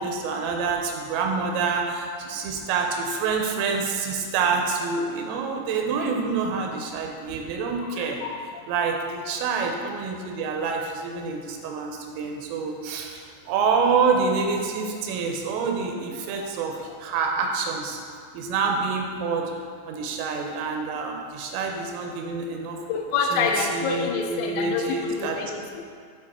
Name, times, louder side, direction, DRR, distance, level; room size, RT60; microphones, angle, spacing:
voice 1, 0.0-8.2 8.7-18.0 18.3-19.5 19.9-22.8 23.3-25.4, right 5 dB, 80° right, 2 dB, 3.1 m, -27 dB
voice 2, 8.0-8.4 22.9-25.9, left 5 dB, 85° left, 3 dB, 3.3 m, -27 dB
9.9 x 4.3 x 4.2 m, 2.2 s
omnidirectional pair, 5.9 m